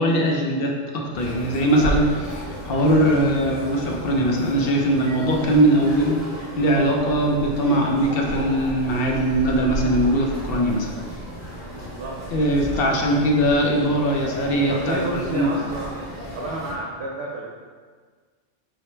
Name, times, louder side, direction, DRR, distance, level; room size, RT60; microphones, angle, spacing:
voice 1, 0.0-6.3 6.6-10.9 12.3-15.5, right 1 dB, 60° left, 0 dB, 0.8 m, -21 dB
sound 1, 1.1-16.7, right 1 dB, 35° left, 0.9 m, -33 dB
voice 2, 11.7-12.2 12.8-13.0 14.7-15.9 16.3-17.5, right 2 dB, 70° right, -3 dB, 0.8 m, -31 dB
4.9 x 2.1 x 4.3 m, 1.5 s
omnidirectional pair, 1.2 m